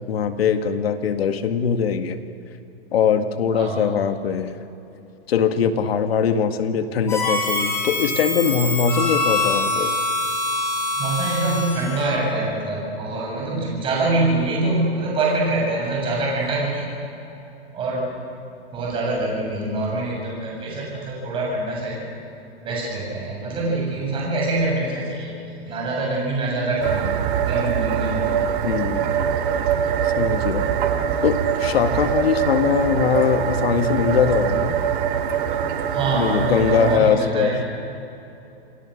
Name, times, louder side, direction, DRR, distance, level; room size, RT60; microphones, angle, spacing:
voice 1, 0.1-2.2 2.9-4.5 5.3-9.9 28.6-29.1 30.0-30.6 31.2-34.8 36.1-37.6, left 7 dB, 70° left, 7 dB, 2.0 m, -21 dB
Harmonica, 7.1-12.1, left 2 dB, 10° left, 7.4 m, -24 dB
voice 2, 11.0-16.9 17.7-18.1 18.7-22.1 22.6-25.3 25.7-27.1 27.4-28.4 35.9-37.6, right 2 dB, 15° right, -3 dB, 7.6 m, -24 dB
sound 1, 26.8-37.0, right 8 dB, 55° right, 2.3 m, -23 dB
28.0 x 20.5 x 6.6 m, 2.8 s
hypercardioid pair, 160°, 32 cm